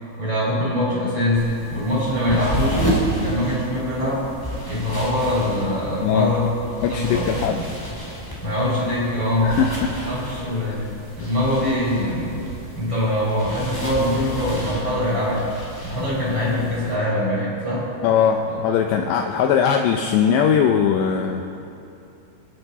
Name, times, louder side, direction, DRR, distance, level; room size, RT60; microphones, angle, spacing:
voice 1, 0.2-2.8 3.2-4.3 4.7-6.5 6.9-7.6 8.4-9.6 10.0-10.8 11.2-12.4 12.8-15.5 15.8-17.9 18.5-18.6, left 1 dB, 25° right, -6 dB, 4.9 m, -23 dB
sound 1, 1.4-16.9, right 1 dB, 5° left, 2.4 m, -31 dB
voice 2, 6.0-6.3 6.8-7.6 9.4-9.9 10.7-10.8 18.0-21.4, left 7 dB, 85° left, 5 dB, 2.4 m, -20 dB
29.0 x 11.5 x 4.1 m, 2.8 s
omnidirectional pair, 5.8 m